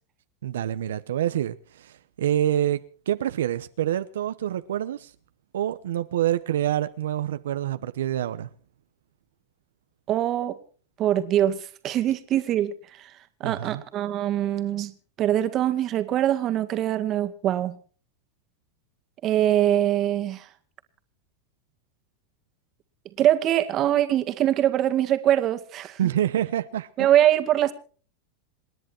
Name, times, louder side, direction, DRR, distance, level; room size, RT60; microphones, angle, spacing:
voice 1, 0.4-5.1 5.5-8.5 13.4-13.8 26.0-27.1, right 11 dB, 90° right, 0.9 m, -27 dB
voice 2, 10.1-10.6 11.0-13.1 13.4-14.9 15.2-17.8 19.2-20.5 23.2-26.0 27.0-27.7, right 12 dB, 35° right, 1.9 m, -23 dB
28.0 x 10.5 x 4.5 m
supercardioid pair, 135°, 0 cm